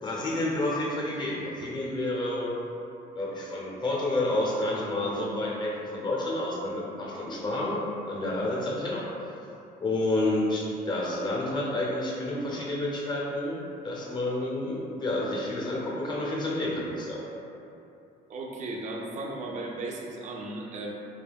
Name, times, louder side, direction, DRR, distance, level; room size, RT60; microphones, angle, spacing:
voice 1, 0.0-2.5 3.1-9.0 9.8-17.2, left 1 dB, 25° left, -4 dB, 0.6 m, -29 dB
voice 2, 18.3-20.9, right 2 dB, 45° right, 0 dB, 0.4 m, -36 dB
2.2 x 2.2 x 3.3 m, 2.7 s
cardioid pair, 110°, 17 cm